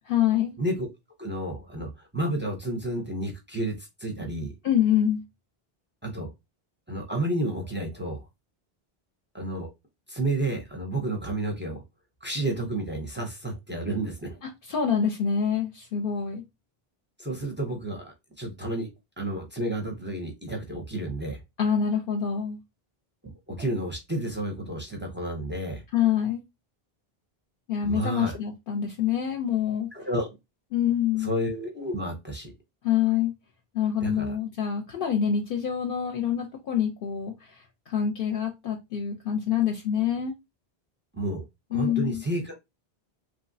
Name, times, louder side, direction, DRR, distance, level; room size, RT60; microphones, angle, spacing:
voice 1, 0.1-0.5 4.6-5.2 14.4-16.4 21.6-22.6 25.9-26.4 27.7-29.9 30.7-31.3 32.8-33.3 33.7-40.3 41.7-42.2, left 8 dB, 65° left, 0.7 m, -26 dB
voice 2, 0.6-0.9 1.2-4.5 6.0-6.3 6.9-8.3 9.3-9.7 10.1-11.8 12.2-14.4 17.2-18.9 19.2-21.4 23.2-25.8 27.8-28.4 29.9-30.3 31.2-32.5 34.0-34.4 41.1-41.4 41.7-42.5, right 1 dB, 15° right, 0.4 m, -31 dB
3.0 x 2.4 x 2.6 m
omnidirectional pair, 1.0 m